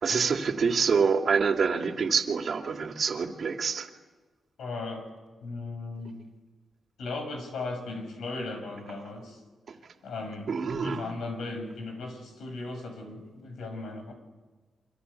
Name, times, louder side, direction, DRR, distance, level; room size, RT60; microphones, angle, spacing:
voice 1, 0.0-3.9 10.5-11.0, right 5 dB, 55° right, 4 dB, 2.7 m, -26 dB
voice 2, 4.6-5.1 5.4-6.2 7.0-9.4 10.0-10.5 10.8-14.1, left 3 dB, 90° left, 6 dB, 6.4 m, -37 dB
27.5 x 25.5 x 8.4 m, 1.3 s
cardioid pair, 110°, 0 cm